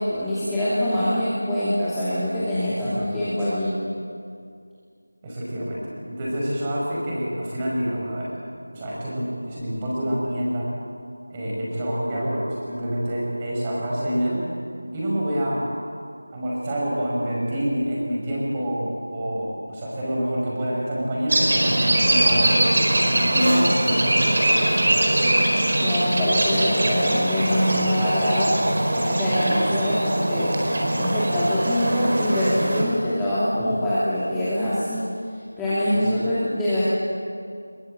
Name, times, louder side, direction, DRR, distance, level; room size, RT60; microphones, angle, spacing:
voice 1, 0.0-3.7 25.8-28.5 29.0-30.5 31.0-35.1 35.6-36.8, left 1 dB, 5° left, -13 dB, 2.7 m, -24 dB
voice 2, 2.8-3.5 5.2-8.3 8.7-10.7 11.3-14.4 14.9-15.7 16.3-22.6 23.2-24.8 33.6-33.9 36.0-36.2, equal, 15° right, -5 dB, 5.5 m, -27 dB
sound 1, 21.3-32.8, right 1 dB, 40° right, 4.7 m, -22 dB
22.5 x 20.5 x 8.8 m, 2.3 s
figure-of-eight pair, 175°, 0 cm